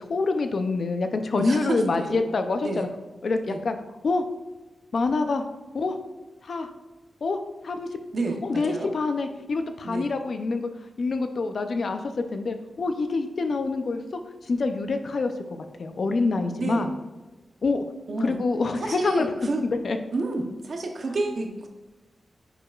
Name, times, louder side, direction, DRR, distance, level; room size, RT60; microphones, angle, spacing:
voice 1, 0.1-2.9 3.2-3.8 4.0-4.2 4.9-5.4 5.7-6.0 6.4-6.7 7.2-7.4 7.6-7.9 8.4-10.7 11.0-14.2 14.5-15.3 15.8-16.9 17.6-17.8 18.2-19.3 19.6-20.0, left 3 dB, 60° left, 7 dB, 0.6 m, -26 dB
voice 2, 1.3-2.2 2.6-2.8 3.5-3.7 8.1-8.9 9.8-10.1 16.6-16.9 18.1-18.4 18.8-19.6 20.1-21.7, right 2 dB, 55° right, 3 dB, 0.9 m, -30 dB
9.8 x 4.9 x 2.4 m, 1.1 s
wide cardioid pair, 110°, 0 cm